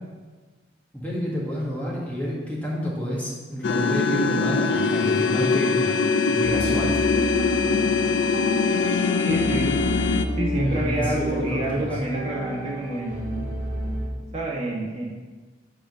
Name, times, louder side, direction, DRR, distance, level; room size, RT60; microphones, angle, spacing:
voice 1, 0.9-6.0 6.3-7.0 10.6-12.0, equal, 10° left, -6 dB, 1.5 m, -29 dB
sound 1, 3.6-10.3, left 4 dB, 80° left, 0.5 m, -22 dB
sound 2, 6.4-14.1, equal, 55° right, 1.9 m, -31 dB
voice 2, 9.2-9.7 10.4-13.3 14.3-15.0, right 1 dB, 35° right, -4 dB, 1.6 m, -27 dB
8.4 x 3.7 x 6.3 m, 1.3 s
head